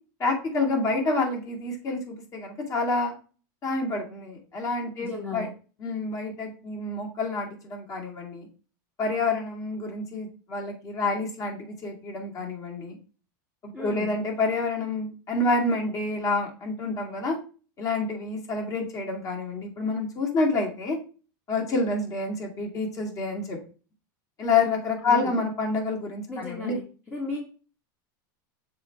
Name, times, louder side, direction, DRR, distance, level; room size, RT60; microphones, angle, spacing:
voice 1, 0.2-3.1 3.6-5.5 5.8-8.5 9.0-13.0 13.8-17.4 17.8-21.0 21.5-23.6 24.4-26.7, left 3 dB, 30° left, 1 dB, 2.1 m, -28 dB
voice 2, 5.0-5.5 13.7-14.1 25.0-25.3 26.3-26.8 27.1-27.4, left 3 dB, 10° left, -1 dB, 1.3 m, -35 dB
6.7 x 4.4 x 3.4 m, 0.37 s
supercardioid pair, 130°, 11 cm